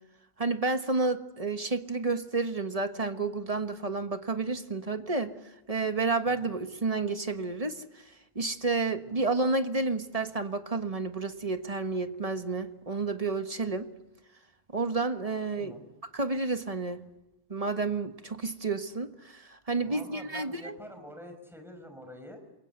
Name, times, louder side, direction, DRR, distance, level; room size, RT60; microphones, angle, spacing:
voice 1, 0.4-5.3 5.7-7.8 8.3-13.9 14.7-15.7 16.1-17.0 17.5-20.7, right 3 dB, 35° right, 8 dB, 1.5 m, -30 dB
voice 2, 19.8-22.4, equal, ahead, 6 dB, 5.1 m, -46 dB
28.0 x 22.5 x 8.0 m, 0.94 s
omnidirectional pair, 1.1 m